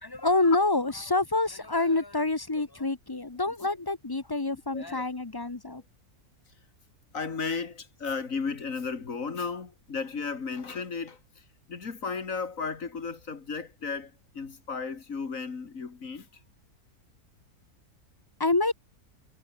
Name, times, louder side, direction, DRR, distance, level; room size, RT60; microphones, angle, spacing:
voice 1, 0.0-5.8 18.4-18.7, left 2 dB, 20° left, 0.7 m, -27 dB
voice 2, 7.1-11.2 11.7-16.3, left 5 dB, 60° left, 2.4 m, -34 dB
omnidirectional pair, 1.6 m